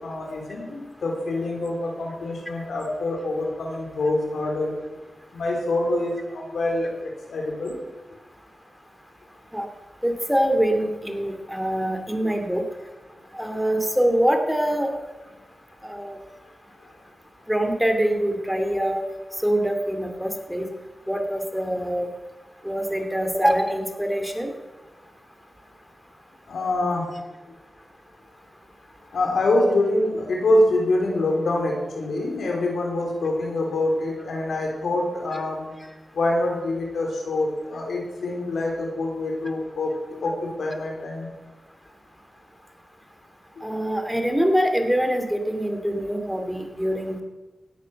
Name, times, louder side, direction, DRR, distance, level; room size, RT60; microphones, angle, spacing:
voice 1, 0.0-4.7 5.3-7.8 26.5-27.0 29.1-35.7 36.1-39.9 40.2-40.3 40.6-41.3, left 2 dB, 85° left, 0 dB, 3.9 m, -25 dB
voice 2, 10.0-12.6 13.3-14.9 15.8-16.2 17.5-19.0 19.4-20.7 21.1-22.1 22.6-24.5 35.3-35.4 43.6-47.2, equal, 5° right, 4 dB, 3.0 m, -24 dB
17.0 x 9.2 x 6.7 m, 1.2 s
cardioid pair, 45°, 0 cm